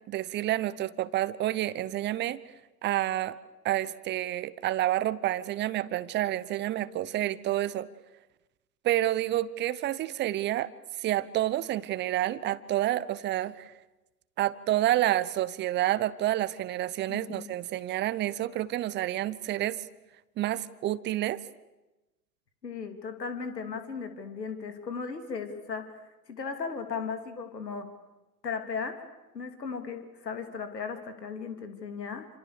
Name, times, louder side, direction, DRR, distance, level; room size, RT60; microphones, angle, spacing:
voice 1, 0.1-2.4 2.8-3.4 3.6-7.9 8.8-10.7 11.0-13.7 14.4-19.8 20.4-21.4, right 14 dB, 20° right, 17 dB, 0.9 m, -29 dB
voice 2, 17.1-17.5 22.6-26.0 26.3-27.9 28.4-29.0 29.3-32.3, left 5 dB, 75° left, 8 dB, 3.4 m, -36 dB
29.0 x 26.5 x 6.9 m, 1.0 s
figure-of-eight pair, 100°, 49 cm